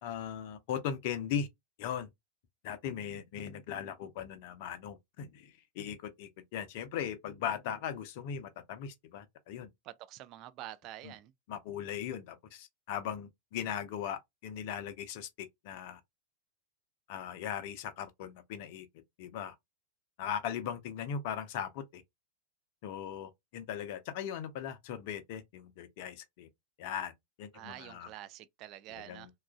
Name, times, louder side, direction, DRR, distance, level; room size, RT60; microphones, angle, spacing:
voice 1, 0.0-1.5 1.8-2.1 2.6-9.7 11.0-11.1 11.5-16.0 17.1-18.9 19.2-19.5 20.2-22.0 22.8-26.5 26.8-27.1 27.4-28.1 28.9-29.3, left 8 dB, 50° left, 0.5 m, -39 dB
voice 2, 9.8-11.3 27.5-29.3, right 13 dB, 40° right, 0.3 m, -47 dB
2.9 x 2.3 x 2.3 m
figure-of-eight pair, 90°, 0 cm